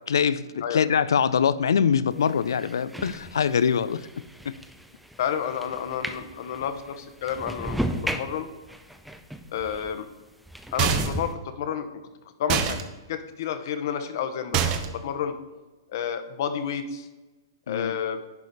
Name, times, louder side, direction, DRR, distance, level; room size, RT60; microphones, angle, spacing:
voice 1, 0.1-4.1 4.4-4.6 17.7-18.0, left 7 dB, 80° left, 16 dB, 0.4 m, -23 dB
sound 1, 2.1-10.0 10.5-11.3, right 1 dB, ahead, 0.5 m, -35 dB
voice 2, 5.2-8.5 9.5-10.1 10.7-12.0 12.4-12.8 13.1-15.4 15.9-17.1 17.7-18.2, left 8 dB, 55° left, 9 dB, 1.0 m, -30 dB
sound 2, 10.8-11.3 12.5-12.8 14.5-15.0, right 8 dB, 35° right, 0.8 m, -25 dB
10.5 x 4.9 x 4.1 m, 1.1 s
hypercardioid pair, 135°, 2 cm